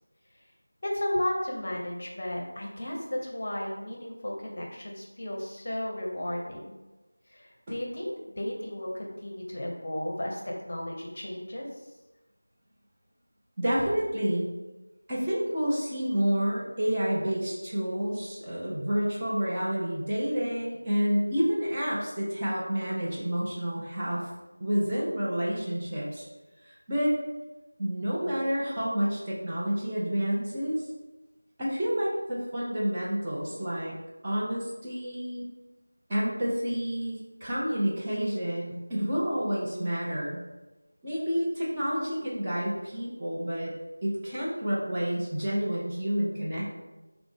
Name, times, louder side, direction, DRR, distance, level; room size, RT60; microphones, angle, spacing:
voice 1, 0.8-6.8 7.3-11.9, left 1 dB, 35° left, -1 dB, 0.7 m, -34 dB
voice 2, 13.6-14.5 15.1-24.3 24.6-26.3 26.6-27.1 27.8-30.9 31.6-33.9 34.2-35.4 36.1-40.4 41.0-43.7 44.0-46.7, equal, 15° right, -8 dB, 0.5 m, -29 dB
5.7 x 2.0 x 3.5 m, 1.1 s
figure-of-eight pair, 170°, 0 cm